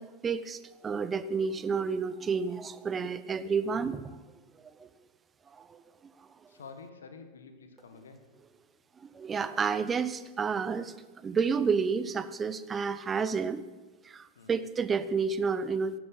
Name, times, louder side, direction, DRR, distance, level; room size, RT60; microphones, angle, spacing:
voice 1, 0.0-4.2 4.8-4.9 5.5-5.8 9.1-10.9 11.2-13.6 14.0-15.9, right 5 dB, 20° right, 14 dB, 0.7 m, -30 dB
voice 2, 6.5-8.2 14.4-14.6, left 5 dB, 65° left, 8 dB, 1.7 m, -49 dB
13.5 x 11.5 x 7.6 m, 1.3 s
figure-of-eight pair, 90°, 0 cm